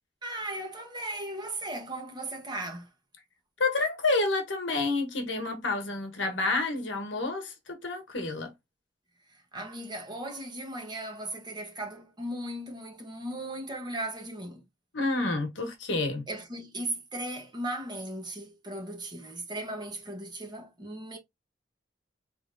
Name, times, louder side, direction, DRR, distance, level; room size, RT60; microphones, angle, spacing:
voice 1, 0.2-2.9 9.5-14.6 16.3-21.2, right 1 dB, 25° right, 1.1 m, -37 dB
voice 2, 3.6-8.5 14.9-16.2, left 3 dB, 90° left, 1.2 m, -29 dB
3.9 x 3.3 x 2.5 m
head